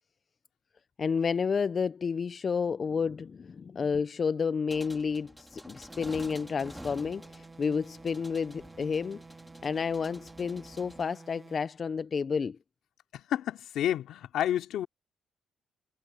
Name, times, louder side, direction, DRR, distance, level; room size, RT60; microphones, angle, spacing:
voice 1, 1.0-9.2 9.6-12.6, left 5 dB, 40° left, 0.5 m, -30 dB
sound 1, 4.7-11.0, equal, ahead, 4.1 m, -49 dB
sound 2, 5.9-11.7, right 3 dB, 25° right, 2.6 m, -51 dB
voice 2, 13.1-14.9, left 11 dB, 80° left, 2.9 m, -30 dB
cardioid pair, 90°, 0 cm